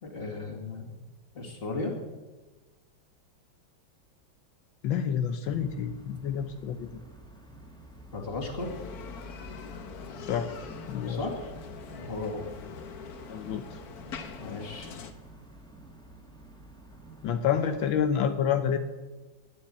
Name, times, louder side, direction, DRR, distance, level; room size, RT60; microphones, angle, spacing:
voice 1, 0.0-0.9 1.3-1.9 8.1-8.7 11.1-11.4 11.9-12.5 14.4-14.9, left 3 dB, 30° left, 1 dB, 2.6 m, -35 dB
voice 2, 4.8-7.0 10.2-10.5 10.9-11.2 13.3-13.8 17.2-18.8, left 8 dB, 80° left, 8 dB, 1.6 m, -28 dB
sound 1, 5.4-18.0, right 1 dB, ahead, 1.7 m, -50 dB
Bicycle, 8.6-15.1, left 5 dB, 55° left, 1.4 m, -43 dB
11.5 x 9.8 x 9.3 m, 1.2 s
omnidirectional pair, 2.2 m